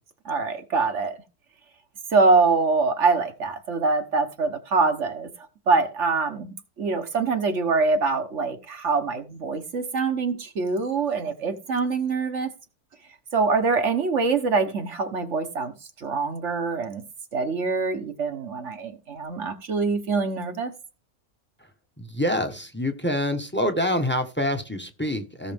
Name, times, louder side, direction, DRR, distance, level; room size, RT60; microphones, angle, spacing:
voice 1, 0.3-1.2 2.1-5.3 5.7-12.5 13.3-15.7 16.0-17.0 17.3-20.7, right 4 dB, 55° right, 1.4 m, -24 dB
voice 2, 22.0-25.5, left 1 dB, 10° left, 1.1 m, -26 dB
17.0 x 6.3 x 3.5 m
omnidirectional pair, 1.6 m